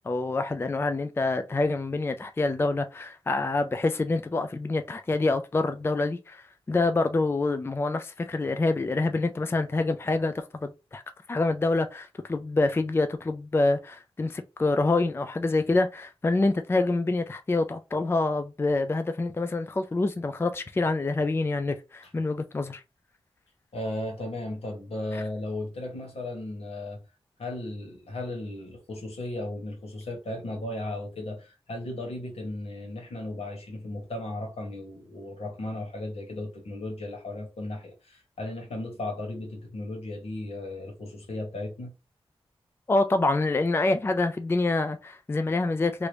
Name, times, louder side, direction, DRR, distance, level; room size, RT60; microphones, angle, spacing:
voice 1, 0.1-11.0 11.3-22.8 42.9-46.1, left 2 dB, 25° left, 0.3 m, -26 dB
voice 2, 23.7-27.0 27.4-41.9, left 1 dB, 80° left, 1.5 m, -35 dB
3.0 x 2.5 x 3.2 m
wide cardioid pair, 70°, 10 cm